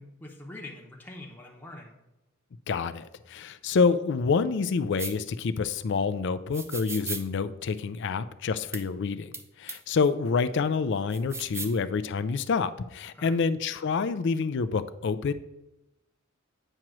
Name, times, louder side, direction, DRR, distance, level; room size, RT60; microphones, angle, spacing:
voice 1, 0.0-1.9 11.5-11.7 13.1-13.4, left 2 dB, 10° left, -1 dB, 0.8 m, -44 dB
voice 2, 2.7-15.3, left 5 dB, 55° left, 12 dB, 0.4 m, -27 dB
sound 1, 5.0-5.1 6.5-7.2 8.7-8.8 9.3-9.4 9.7-9.8 11.1-11.8, right 4 dB, 10° right, 0.5 m, -36 dB
8.9 x 3.0 x 6.1 m, 0.96 s
head